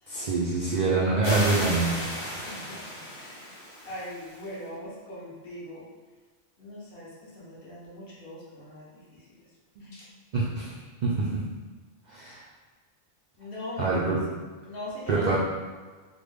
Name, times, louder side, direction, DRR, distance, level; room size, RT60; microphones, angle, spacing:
voice 1, 0.1-2.4 9.8-9.9 10.3-10.7 11.0-11.4 12.1-12.4 13.8-14.2 15.1-15.4, right 3 dB, 65° right, -5 dB, 0.4 m, -26 dB
sound 1, 1.2-4.5, left 1 dB, 25° left, 0.7 m, -34 dB
voice 2, 2.4-2.8 3.2-3.5 3.9-5.8 6.6-9.2 9.8-10.0 13.4-14.0 14.7-15.4, left 1 dB, 55° left, -7 dB, 1.1 m, -41 dB
3.5 x 2.2 x 3.2 m, 1.4 s
omnidirectional pair, 1.2 m